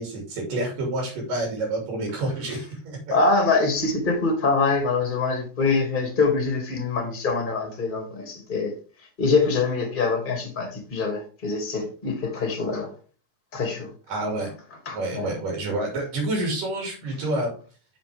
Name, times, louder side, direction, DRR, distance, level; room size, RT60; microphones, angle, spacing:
voice 1, 0.0-3.2 14.1-14.5 14.9-17.5, right 2 dB, 85° right, -1 dB, 4.6 m, -28 dB
voice 2, 3.1-8.7 9.2-12.9 13.5-13.9 14.9-15.3, left 3 dB, 20° left, 4 dB, 2.0 m, -24 dB
9.8 x 7.1 x 3.5 m, 0.37 s
omnidirectional pair, 3.7 m